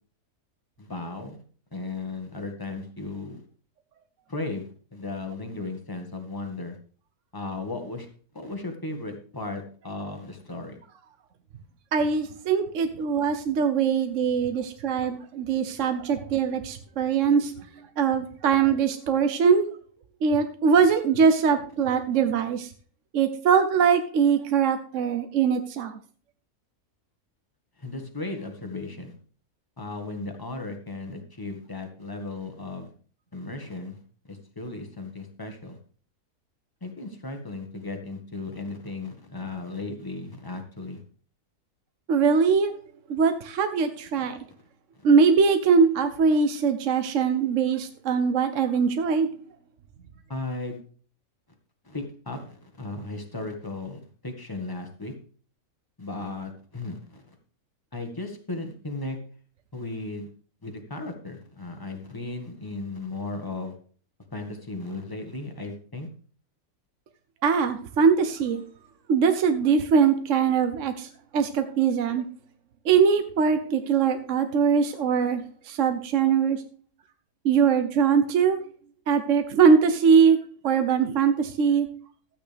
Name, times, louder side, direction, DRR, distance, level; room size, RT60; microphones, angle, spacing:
voice 1, 0.8-1.4 1.7-3.4 4.3-6.8 7.3-8.1 8.3-10.8 27.8-29.1 29.8-32.9 33.3-34.0 34.3-35.8 36.8-41.0 44.2-44.4 50.3-50.8 51.8-55.1 56.0-57.3 57.9-59.2 59.7-60.3 60.6-63.7 64.3-66.1, left 2 dB, 15° left, 4 dB, 1.4 m, -36 dB
voice 2, 11.9-17.5 18.0-19.7 20.2-22.7 23.1-26.0 42.1-42.7 43.1-44.4 45.0-49.3 67.4-68.6 69.1-72.2 72.8-76.6 77.4-78.6 79.1-80.4 80.6-81.9, right 6 dB, 60° right, 8 dB, 1.1 m, -22 dB
13.0 x 8.8 x 3.4 m, 0.43 s
omnidirectional pair, 1.6 m